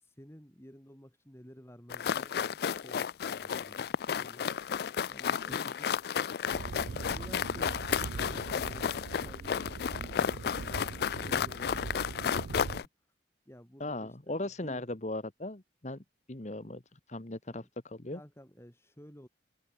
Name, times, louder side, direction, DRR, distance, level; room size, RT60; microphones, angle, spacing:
voice 1, 0.0-4.4 5.1-6.5 6.9-9.6 10.0-12.3 12.6-12.9 13.5-14.8 17.5-17.7 18.1-19.3, equal, 15° left, 3.5 m, -53 dB
sound 1, 1.9-12.9, left 7 dB, 55° left, 0.3 m, -33 dB
sound 2, 6.5-12.8, right 4 dB, 70° right, 0.4 m, -41 dB
voice 2, 13.8-16.0 16.3-18.2, left 2 dB, 40° left, 1.5 m, -38 dB
open air
head